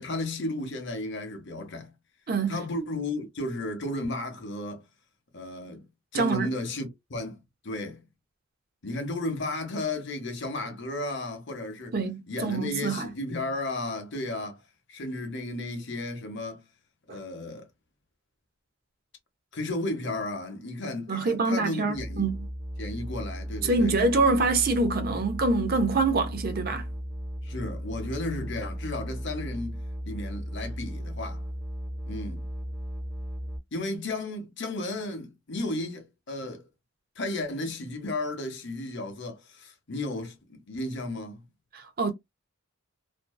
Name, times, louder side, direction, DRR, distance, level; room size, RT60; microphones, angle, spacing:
voice 1, 0.0-1.9 2.5-4.8 5.3-5.8 6.1-8.0 8.8-12.0 12.3-14.6 14.9-16.6 17.1-17.7 19.5-22.3 22.8-23.9 27.4-31.4 32.1-32.5 33.7-36.7 37.2-41.4, left 2 dB, 55° left, 0.7 m, -34 dB
voice 2, 2.3-2.6 6.1-6.5 11.9-13.1 17.1-17.2 21.1-22.4 23.6-26.9 41.7-42.1, right 3 dB, 45° right, 0.5 m, -25 dB
sound 1, 21.9-33.6, equal, ahead, 0.7 m, -36 dB
2.5 x 2.2 x 2.2 m
head